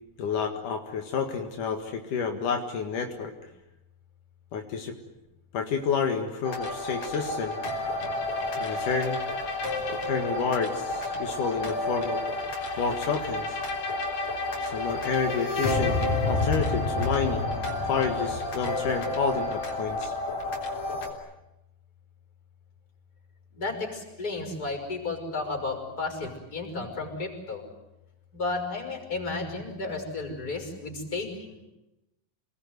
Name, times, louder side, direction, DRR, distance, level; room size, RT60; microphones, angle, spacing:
voice 1, 0.2-3.3 4.5-5.0 5.5-7.6 8.6-9.2 10.1-12.2 12.8-13.6 14.7-20.1, left 5 dB, 80° left, 4 dB, 3.4 m, -29 dB
sound 1, 6.4-21.1, left 2 dB, 65° left, 5.0 m, -30 dB
voice 2, 23.5-27.6 28.3-31.6, left 3 dB, 25° left, 4 dB, 6.2 m, -33 dB
28.0 x 20.5 x 9.6 m, 0.94 s
omnidirectional pair, 3.6 m